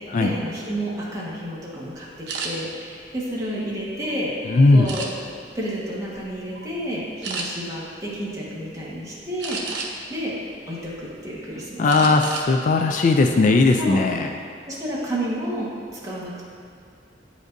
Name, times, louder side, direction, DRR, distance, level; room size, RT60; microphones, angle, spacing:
voice 1, 0.0-4.3 4.7-5.0 5.5-10.3 10.7-12.2 13.8-14.0 14.7-16.5, equal, 20° right, -6 dB, 1.3 m, -31 dB
sound 1, 2.3-2.5 3.1-4.1 4.8-5.4 6.0-6.2 6.5-6.7 7.2-7.5 9.4-10.1 10.6-11.3 11.9-12.5 12.8-13.0 13.4-13.8, right 4 dB, 85° right, 0.8 m, -32 dB
voice 2, 4.4-4.9 11.8-14.3, left 3 dB, 45° left, 4 dB, 0.3 m, -18 dB
9.4 x 5.1 x 2.6 m, 2.4 s
head